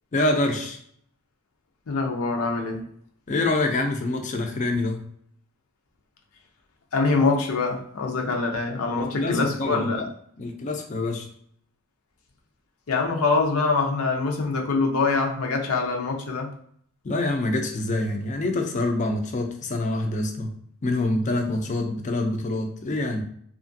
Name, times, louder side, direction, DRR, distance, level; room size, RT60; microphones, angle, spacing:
voice 1, 0.1-0.8 3.3-5.0 9.2-9.9 10.4-11.3 17.0-20.5 20.8-23.2, left 2 dB, 35° left, 4 dB, 0.4 m, -26 dB
voice 2, 1.9-2.8 6.9-10.1 12.9-16.6, left 3 dB, 85° left, 2 dB, 0.6 m, -24 dB
2.8 x 2.4 x 2.6 m, 0.64 s
head